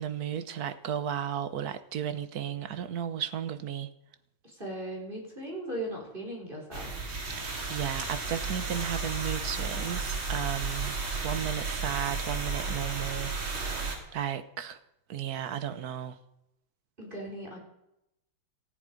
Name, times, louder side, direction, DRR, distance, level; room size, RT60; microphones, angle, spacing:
voice 1, 0.0-3.9 7.4-11.0 11.2-14.8 15.1-16.2, right 9 dB, 55° right, 1.3 m, -34 dB
voice 2, 4.4-6.9 17.0-17.6, right 1 dB, 20° right, 4.7 m, -38 dB
sound 1, 6.7-14.0, right 4 dB, 70° right, 3.7 m, -33 dB
18.5 x 14.0 x 5.3 m
omnidirectional pair, 2.3 m